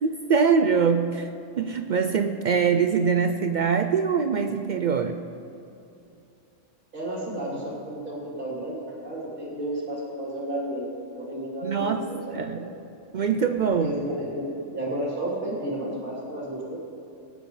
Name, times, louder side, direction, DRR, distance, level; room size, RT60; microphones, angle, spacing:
voice 1, 0.0-1.3 1.6-5.2 11.6-12.0 12.3-12.6 13.1-13.9, right 6 dB, 65° right, 6 dB, 0.4 m, -23 dB
voice 2, 6.9-12.7 13.8-14.4 14.7-16.8, right 1 dB, 45° right, -6 dB, 3.1 m, -32 dB
21.5 x 9.0 x 3.2 m, 2.6 s
omnidirectional pair, 1.3 m